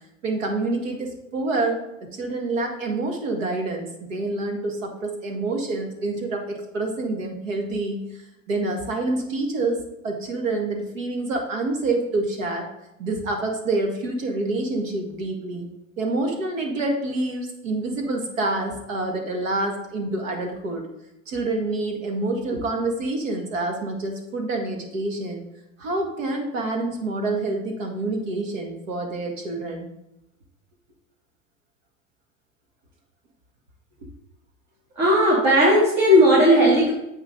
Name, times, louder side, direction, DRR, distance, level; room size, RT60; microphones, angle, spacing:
voice 1, 0.2-8.0 8.5-12.7 13.0-15.7 16.0-20.9 21.3-25.4 25.8-29.9, right 2 dB, 75° right, 3 dB, 2.0 m, -27 dB
voice 2, 35.0-36.9, equal, 45° right, -6 dB, 3.1 m, -16 dB
7.9 x 6.1 x 3.9 m, 0.87 s
hypercardioid pair, 95°, 39 cm